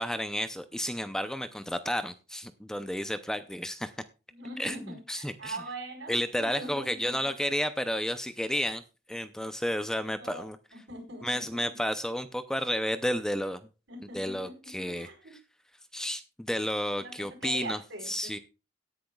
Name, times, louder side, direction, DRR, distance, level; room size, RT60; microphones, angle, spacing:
voice 1, 0.0-3.9 4.6-5.6 6.1-8.8 9.1-10.6 11.2-13.6 14.1-15.1 15.9-17.8 18.0-18.4, equal, 5° left, 10 dB, 0.5 m, -31 dB
voice 2, 4.3-7.2 10.2-10.4 10.7-11.7 13.9-15.3 17.0-17.1 17.4-18.3, right 2 dB, 75° right, 1 dB, 4.7 m, -42 dB
17.5 x 10.5 x 2.3 m, 0.32 s
head